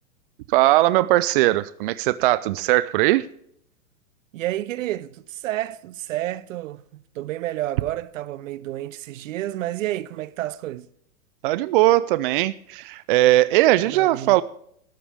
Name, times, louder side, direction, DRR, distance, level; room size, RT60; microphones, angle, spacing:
voice 1, 0.5-3.3 11.4-14.4, right 16 dB, 40° right, 0.4 m, -19 dB
voice 2, 4.3-10.9 13.8-14.4, right 14 dB, 60° right, 0.8 m, -30 dB
12.5 x 12.5 x 3.4 m
hypercardioid pair, 125°, 43 cm